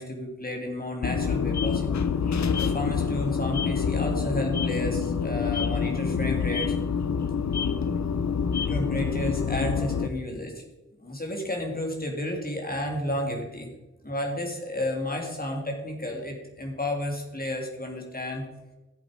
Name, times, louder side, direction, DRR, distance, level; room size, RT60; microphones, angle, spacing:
voice 1, 0.0-2.1 2.6-6.7 8.7-10.6 11.0-13.7 14.0-18.5, left 1 dB, 30° left, 0 dB, 3.2 m, -32 dB
sound 1, 1.0-10.1, left 6 dB, 60° left, 0.9 m, -26 dB
14.5 x 7.8 x 5.2 m, 1.1 s
wide cardioid pair, 75°, 31 cm